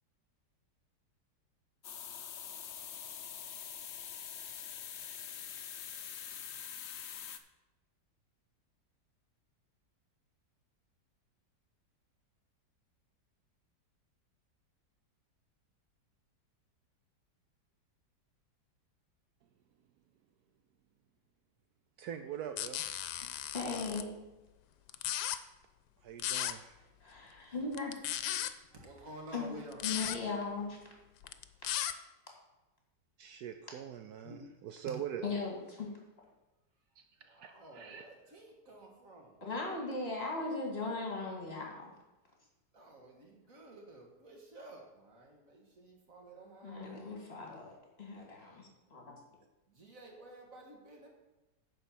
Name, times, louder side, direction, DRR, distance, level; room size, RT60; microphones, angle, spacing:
sound 1, 1.8-7.4, left 8 dB, 60° left, 0.7 m, -44 dB
voice 1, 22.0-22.8 26.0-26.7 33.2-35.3 37.0-37.1 37.4-38.0, right 9 dB, 75° right, 8 dB, 1.0 m, -43 dB
sound 2, 22.6-24.0 24.9-25.4 26.2-26.5 27.7-28.5 29.7-30.2 31.2-31.9, left 12 dB, 80° left, 1.2 m, -36 dB
voice 2, 23.5-24.1 27.0-28.0 29.3-30.8 34.2-34.4 35.2-35.9 39.4-41.9 46.6-49.1, left 3 dB, 35° left, 0 dB, 2.2 m, -38 dB
voice 3, 28.7-29.9 37.2-39.4 42.7-47.1 49.7-51.1, right 1 dB, 50° right, 0 dB, 2.0 m, -52 dB
10.0 x 4.5 x 7.1 m, 1.1 s
omnidirectional pair, 1.8 m